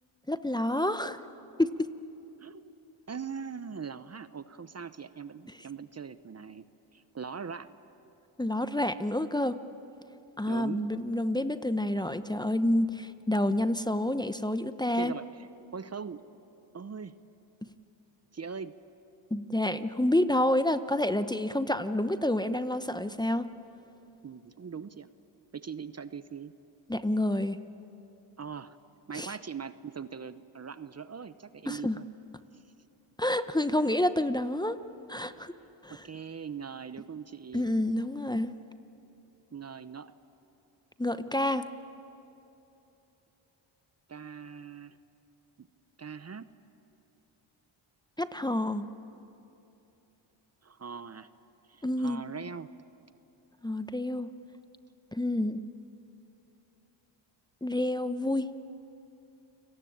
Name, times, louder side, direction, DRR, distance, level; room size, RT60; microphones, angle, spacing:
voice 1, 0.3-1.2 1.6-1.9 8.4-9.6 10.4-15.1 19.3-23.5 26.9-27.6 29.1-29.4 31.7-32.0 33.2-34.8 35.1-35.5 35.8-36.0 37.5-38.5 41.0-41.7 48.2-48.8 51.8-52.2 53.6-54.3 55.1-55.6 57.6-58.5, left 1 dB, 10° left, 11 dB, 0.8 m, -28 dB
voice 2, 3.1-6.6 6.9-7.7 10.5-10.9 15.0-16.2 16.7-17.1 18.3-18.7 24.2-25.1 25.5-26.5 28.4-28.8 29.1-32.0 35.9-37.7 39.5-40.1 44.1-45.0 45.6-45.7 46.0-46.5 50.6-51.3 51.7-52.7, right 6 dB, 30° right, 13 dB, 0.8 m, -41 dB
29.5 x 19.0 x 8.8 m, 2.9 s
cardioid pair, 70°, 47 cm